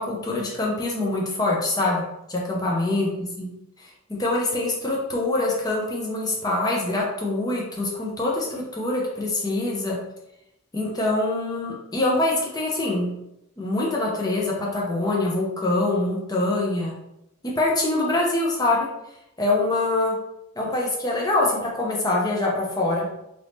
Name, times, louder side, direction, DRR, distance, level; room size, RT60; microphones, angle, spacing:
voice 1, 0.0-2.0 2.3-3.5 3.8-10.0 10.7-13.1 13.6-16.9 17.6-18.9 19.4-20.2 20.6-23.1, left 2 dB, 20° left, -3 dB, 0.6 m, -24 dB
2.9 x 2.7 x 3.4 m, 0.83 s
head